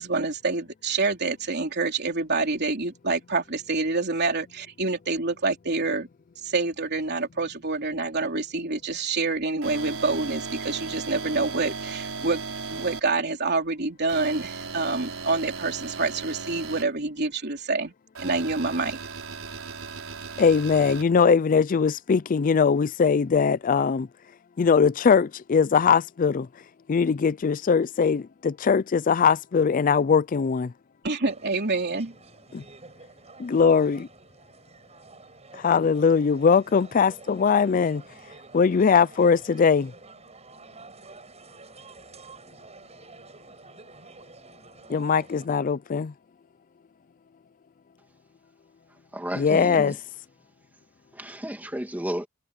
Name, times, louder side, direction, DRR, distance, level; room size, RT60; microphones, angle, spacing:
voice 1, 0.0-6.1 6.4-17.9 18.2-19.0 31.0-32.1, right 3 dB, 55° right, 3.4 m, -27 dB
sound 1, 9.6-13.0 14.1-16.8 18.2-21.0, right 4 dB, 85° right, 4.8 m, -36 dB
voice 2, 20.4-24.1 24.6-26.5 26.9-30.7 32.5-32.6 33.4-34.1 35.6-38.0 38.5-39.9 44.9-46.1 49.4-49.9, left 6 dB, 40° left, 0.4 m, -21 dB
sound 2, 31.2-45.5, right 3 dB, 35° right, 7.6 m, -49 dB
voice 3, 49.1-50.0 51.1-52.3, equal, 10° right, 2.3 m, -32 dB
head